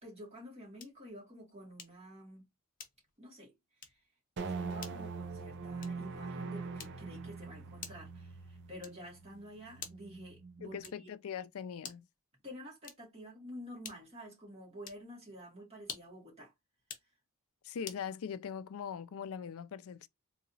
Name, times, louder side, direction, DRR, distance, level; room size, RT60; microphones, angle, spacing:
voice 1, 0.0-2.4 3.2-3.6 3.8-4.0 4.4-11.1 12.4-16.5, equal, 30° right, 2.2 m, -50 dB
sound 1, 0.8-1.1 1.8-2.1 2.8-3.2 3.8-4.1 4.8-5.1 5.8-6.1 6.8-7.2 7.8-8.2 8.8-9.2 9.8-10.2 10.8-11.2 11.8-12.2 12.8-13.2 13.8-14.2 14.8-15.1 15.8-16.2 16.8-17.1 17.8-18.1, left 7 dB, 40° left, 0.8 m, -49 dB
sound 2, 4.4-10.8, right 4 dB, 55° right, 0.6 m, -43 dB
voice 2, 10.6-12.1 17.6-20.1, left 7 dB, 65° left, 0.4 m, -41 dB
3.9 x 2.8 x 2.7 m
head